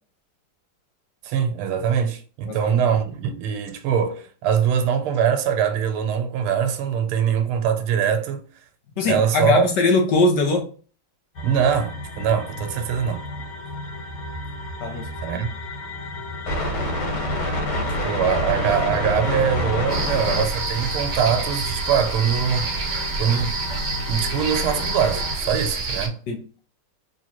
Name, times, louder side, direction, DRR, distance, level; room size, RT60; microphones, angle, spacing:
voice 1, 1.2-8.4 9.0-9.6 11.4-13.3 15.2-15.5 17.9-22.9 23.2-23.5 24.1-26.2, right 8 dB, 90° right, 1.6 m, -23 dB
voice 2, 9.0-10.7 14.8-15.1 15.3-15.4 26.3-26.4, left 3 dB, 65° left, 1.1 m, -20 dB
sound 1, 11.3-25.4, left 1 dB, 85° left, 2.2 m, -29 dB
sound 2, 19.9-26.1, right 4 dB, 55° right, 0.8 m, -28 dB
3.6 x 3.1 x 2.9 m
omnidirectional pair, 2.3 m